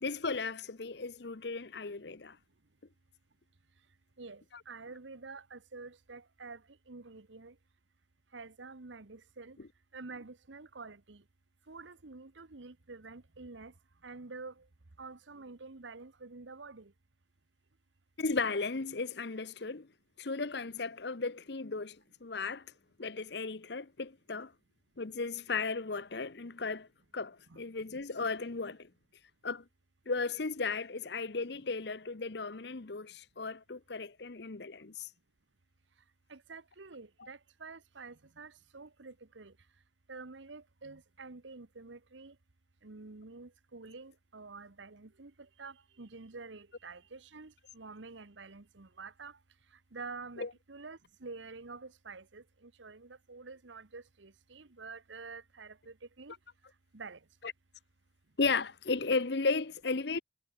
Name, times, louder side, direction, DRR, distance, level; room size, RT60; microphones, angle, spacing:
voice 1, 0.0-2.4 18.2-19.9 20.2-22.6 23.0-24.5 25.0-26.9 27.1-28.9 29.4-29.6 30.1-35.1 50.4-50.5 57.4-57.5 58.4-60.2, left 4 dB, 60° left, 0.9 m, -35 dB
voice 2, 4.2-6.6 6.9-7.5 8.3-9.6 9.9-11.2 11.7-13.7 14.0-14.6 15.0-16.9 27.5-27.6 36.3-39.5 40.1-42.3 42.8-49.4 49.9-56.3 56.9-57.2, right 4 dB, 80° right, 1.2 m, -48 dB
head